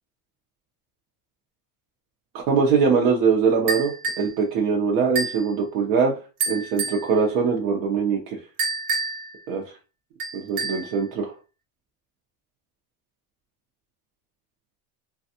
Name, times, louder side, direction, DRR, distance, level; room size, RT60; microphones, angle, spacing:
voice 1, 2.5-6.1 6.5-8.4 9.5-9.7 10.3-11.3, right 5 dB, 85° right, -1 dB, 0.8 m, -22 dB
sound 1, 3.7-4.3 5.1-5.5 6.4-7.0 8.6-9.3 10.2-10.9, right 3 dB, 65° right, 1.1 m, -28 dB
3.3 x 2.3 x 2.7 m, 0.32 s
cardioid pair, 175°, 43 cm